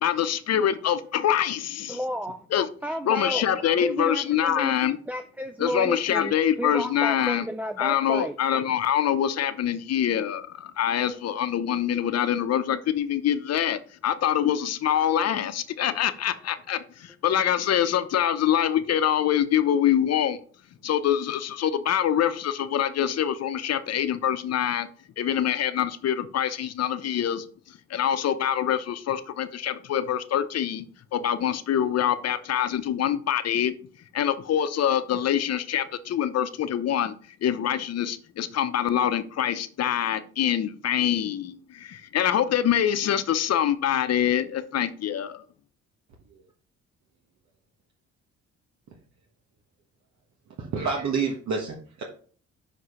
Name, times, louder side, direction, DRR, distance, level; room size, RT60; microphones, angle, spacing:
voice 1, 0.0-2.0 2.5-2.7 3.0-5.0 5.6-7.5 7.8-20.4 20.8-24.9 25.2-30.8 31.1-33.8 34.1-37.1 37.4-45.4, left 10 dB, 60° left, 12 dB, 0.8 m, -25 dB
voice 2, 1.9-2.5 2.8-3.5 3.8-4.8 5.1-8.3 15.2-15.3, equal, 5° right, 7 dB, 0.4 m, -32 dB
voice 3, 50.6-52.0, right 5 dB, 70° right, 0 dB, 1.4 m, -28 dB
5.9 x 4.9 x 5.6 m, 0.44 s
cardioid pair, 110°, 29 cm